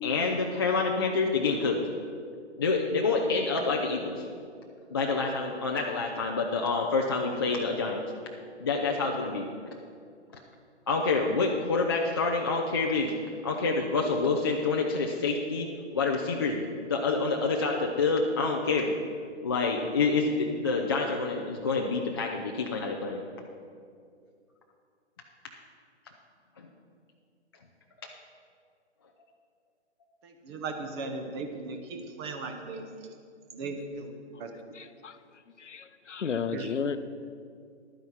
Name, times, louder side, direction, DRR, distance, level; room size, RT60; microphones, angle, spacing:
voice 1, 0.0-1.8 2.6-4.2 4.9-8.0 8.6-9.5 10.9-13.1 13.4-15.7 15.9-18.9 19.4-23.2 26.6-26.7 28.0-28.1, left 4 dB, 20° left, 0 dB, 0.4 m, -27 dB
voice 2, 30.2-32.9 33.5-34.1 34.4-34.5 36.5-36.7, right 3 dB, 25° right, 5 dB, 0.8 m, -37 dB
voice 3, 34.7-35.2 35.6-37.1, left 6 dB, 90° left, 12 dB, 0.7 m, -33 dB
11.5 x 9.3 x 4.6 m, 2.3 s
figure-of-eight pair, 135°, 35 cm